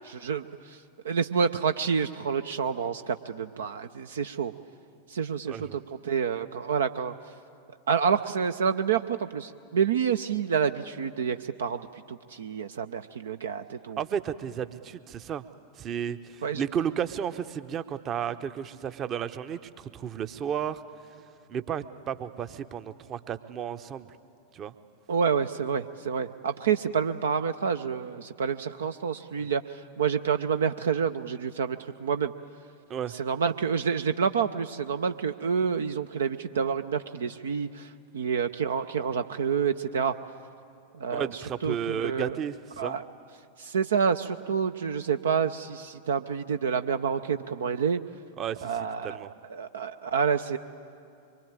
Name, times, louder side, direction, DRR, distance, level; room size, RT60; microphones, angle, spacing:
voice 1, 0.2-4.5 5.1-7.1 7.9-14.0 16.4-16.6 25.1-32.3 33.1-40.2 40.9-42.4 42.8-43.0 43.6-48.0 48.6-50.6, right 6 dB, 65° right, 9 dB, 0.6 m, -28 dB
voice 2, 5.5-5.8 14.0-15.4 15.8-20.8 21.5-24.1 24.5-24.7 29.4-29.5 32.9-33.1 41.1-42.9 48.4-48.7 49.0-49.3, right 8 dB, 30° right, 12 dB, 0.9 m, -33 dB
24.5 x 23.5 x 9.0 m, 2.5 s
figure-of-eight pair, 90°, 0 cm